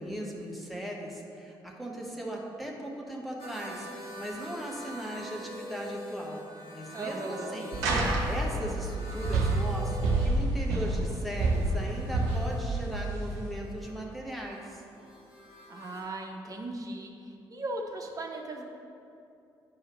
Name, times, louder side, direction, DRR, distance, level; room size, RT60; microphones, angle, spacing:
voice 1, 0.0-6.4 6.7-7.8 8.2-14.8, right 1 dB, ahead, -2 dB, 1.2 m, -38 dB
sound 1, 3.4-16.0, equal, 50° left, 1.4 m, -45 dB
voice 2, 6.9-7.6 15.7-18.6, right 2 dB, 30° right, 2 dB, 0.9 m, -38 dB
sound 2, 7.7-13.6, right 2 dB, 65° right, 0.7 m, -29 dB
9.9 x 4.7 x 3.1 m, 2.6 s
figure-of-eight pair, 40°, 12 cm